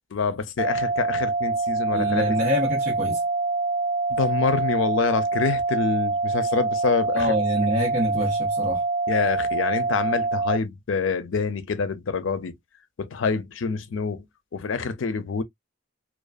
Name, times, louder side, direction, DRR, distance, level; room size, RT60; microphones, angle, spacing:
voice 1, 0.1-2.2 4.1-7.3 9.1-12.5 13.0-14.2 14.5-15.4, left 5 dB, 75° left, 0.5 m, -26 dB
sound 1, 0.6-10.6, right 3 dB, 20° right, 0.4 m, -25 dB
voice 2, 1.9-3.2 7.1-8.8, equal, 45° right, 1.0 m, -26 dB
2.4 x 2.3 x 2.3 m
head